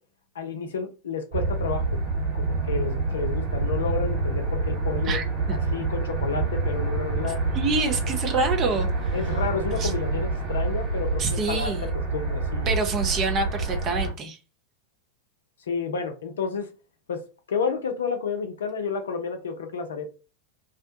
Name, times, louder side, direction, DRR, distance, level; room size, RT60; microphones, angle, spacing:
voice 1, 0.3-2.0 2.3-5.2 5.5-7.4 9.1-11.7 12.1-12.7 15.7-16.7 17.1-17.2 17.5-20.1, left 5 dB, 65° left, 0.5 m, -30 dB
sound 1, 1.3-14.1, right 3 dB, 50° right, 1.3 m, -27 dB
voice 2, 5.1-5.6 7.5-9.1 9.8-9.9 11.2-11.9 12.7-14.4, right 3 dB, 30° right, 0.7 m, -27 dB
2.4 x 2.2 x 2.7 m
figure-of-eight pair, 90°, 0 cm